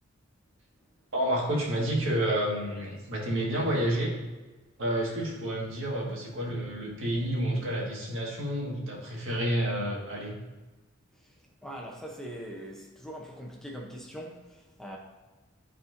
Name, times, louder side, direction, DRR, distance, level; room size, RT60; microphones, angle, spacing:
voice 1, 1.1-4.1 4.8-10.4, right 1 dB, 75° right, -3 dB, 1.7 m, -29 dB
voice 2, 11.6-15.0, equal, 5° left, -1 dB, 0.7 m, -42 dB
11.0 x 4.3 x 2.6 m, 1.2 s
head